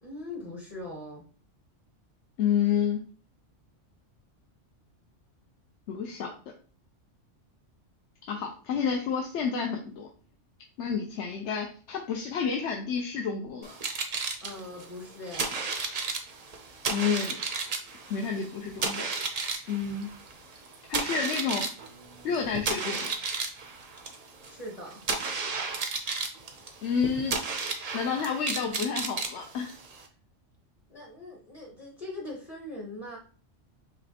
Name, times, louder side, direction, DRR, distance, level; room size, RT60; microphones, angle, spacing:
voice 1, 0.0-1.2 14.4-15.6 24.4-25.0 30.9-33.2, left 1 dB, 30° left, -1 dB, 0.9 m, -41 dB
voice 2, 2.4-3.0 5.9-6.3 8.3-10.1 10.8-13.7 16.9-17.4 18.1-19.1 19.7-20.1 20.9-21.7 22.2-23.1 26.8-27.4 27.9-29.7, left 6 dB, 70° left, 2 dB, 0.9 m, -29 dB
sound 1, 13.6-30.1, right 4 dB, 45° right, 0.5 m, -33 dB
5.1 x 3.1 x 2.8 m, 0.40 s
omnidirectional pair, 1.3 m